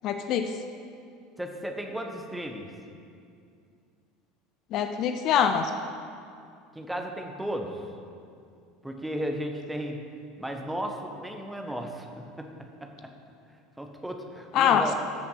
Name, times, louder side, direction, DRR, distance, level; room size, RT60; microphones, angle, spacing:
voice 1, 0.0-0.5 4.7-5.7 14.5-15.0, left 8 dB, 45° left, 7 dB, 0.5 m, -24 dB
voice 2, 1.4-2.7 6.7-7.7 8.8-10.0 10.4-12.5 12.8-13.1 13.8-14.9, equal, 5° right, 3 dB, 1.3 m, -34 dB
14.0 x 6.7 x 5.7 m, 2.4 s
figure-of-eight pair, 70°, 0 cm